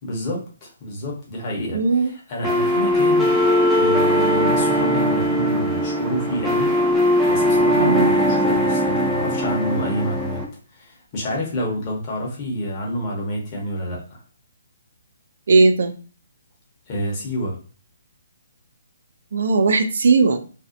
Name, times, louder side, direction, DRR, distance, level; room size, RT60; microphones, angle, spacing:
voice 1, 0.0-3.3 3.7-6.7 7.3-10.4 10.7-14.2 16.9-17.6, equal, 35° left, -2 dB, 0.8 m, -28 dB
voice 2, 1.7-2.1 7.8-8.1 15.5-15.9 19.3-20.4, right 3 dB, 70° right, 8 dB, 0.3 m, -17 dB
sound 1, 2.4-10.4, equal, ahead, 0.4 m, -19 dB
2.5 x 2.1 x 2.5 m, 0.39 s
hypercardioid pair, 155°, 0 cm